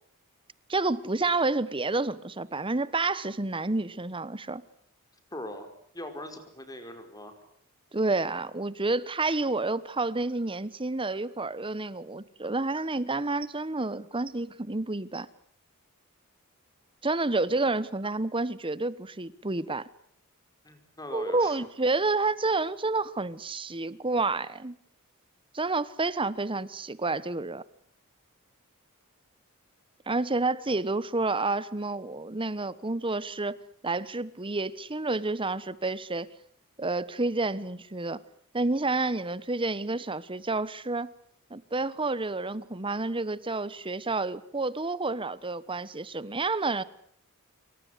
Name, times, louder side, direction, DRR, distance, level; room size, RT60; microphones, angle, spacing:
voice 1, 0.7-4.6 7.9-15.3 17.0-19.8 21.1-24.8 25.5-27.6 30.1-33.6 33.8-36.3 36.8-38.2 38.5-41.1 41.5-46.8, right 3 dB, 25° right, 1.1 m, -29 dB
voice 2, 5.3-5.7 5.9-7.3 20.6-21.7 30.7-30.8, left 1 dB, 15° left, 5.0 m, -41 dB
27.5 x 24.5 x 8.2 m
head